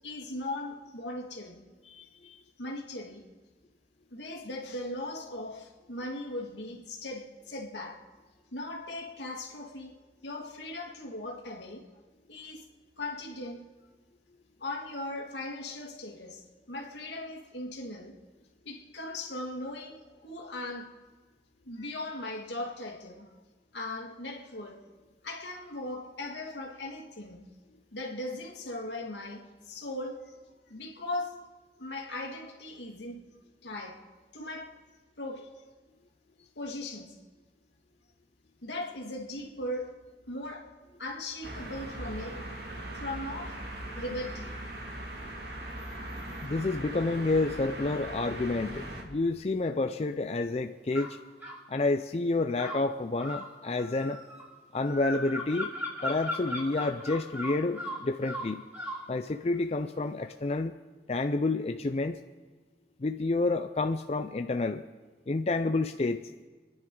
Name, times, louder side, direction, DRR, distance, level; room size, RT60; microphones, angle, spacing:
voice 1, 0.0-1.6 2.6-3.3 4.1-8.1 8.5-11.9 12.3-12.7 13.0-13.7 14.6-18.2 18.7-20.9 21.7-23.3 23.7-24.8 25.2-27.5 27.9-30.3 30.7-31.4 31.8-33.3 33.6-34.0 34.3-34.8 35.2-35.5 36.6-37.2 38.6-39.9 40.2-44.5, left 1 dB, 85° left, 2.1 m, -39 dB
voice 2, 1.9-2.4 46.4-51.2 51.7-54.2 54.7-55.7 56.0-58.6 59.1-60.7 61.1-62.2 63.0-64.8 65.3-66.2, left 2 dB, 35° left, 0.4 m, -29 dB
sound 1, 41.4-49.0, right 1 dB, 60° right, 2.4 m, -40 dB
sound 2, 50.9-51.6 52.6-59.1, left 1 dB, 10° right, 3.0 m, -38 dB
29.0 x 10.5 x 3.8 m
head